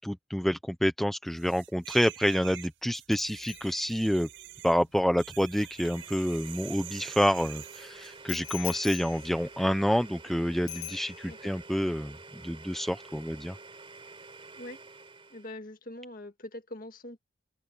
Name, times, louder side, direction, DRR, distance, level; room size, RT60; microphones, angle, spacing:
voice 1, 0.0-4.3 4.6-12.2 12.4-13.6, equal, ahead, 0.6 m, -28 dB
sound 1, 1.4-8.2 9.2-9.4, right 13 dB, 60° right, 6.9 m, -46 dB
Bicycle bell, 3.1-6.9 8.3-10.3 10.7-11.5 11.8-12.1, left 14 dB, 70° left, 1.6 m, -45 dB
Domestic sounds home sounds, 5.6-15.6, right 3 dB, 25° right, 4.1 m, -49 dB
voice 2, 15.3-17.2, left 1 dB, 40° left, 1.9 m, -43 dB
open air
head